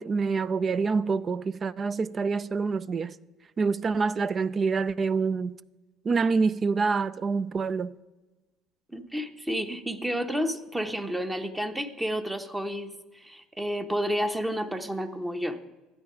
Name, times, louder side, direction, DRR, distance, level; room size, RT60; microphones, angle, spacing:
voice 1, 0.0-3.1 3.6-5.6 6.0-7.9, right 4 dB, 35° right, 0.4 m, -26 dB
voice 2, 8.9-15.6, equal, 10° right, 1.0 m, -31 dB
13.0 x 9.3 x 4.9 m
hypercardioid pair, 65°, 0 cm